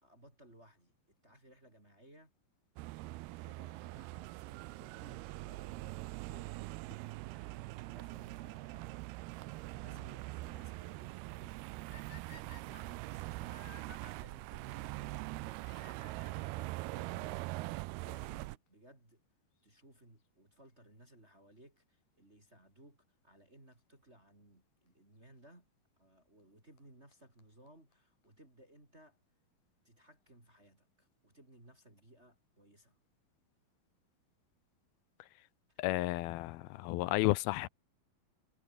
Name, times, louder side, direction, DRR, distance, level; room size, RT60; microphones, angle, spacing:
voice 1, 0.0-2.3 3.0-9.0 9.8-15.8 18.0-19.2 19.6-25.7 26.0-29.2 29.8-33.0 35.7-35.8, right 1 dB, 15° right, 4.8 m, -61 dB
sound 1, 2.8-18.6, right 21 dB, 85° right, 2.6 m, -43 dB
sound 2, 11.9-14.1 15.6-16.7 17.6-17.7 18.4-18.5 18.7-18.8 20.7-20.9 23.7-23.8 24.9-25.0 26.4-26.5 26.8-26.9 27.1-27.2 27.4-27.5 27.7-27.8 27.9-28.0 28.2-28.3, left 8 dB, 60° left, 4.1 m, -58 dB
voice 2, 35.8-37.7, left 18 dB, 80° left, 2.5 m, -32 dB
omnidirectional pair, 4.5 m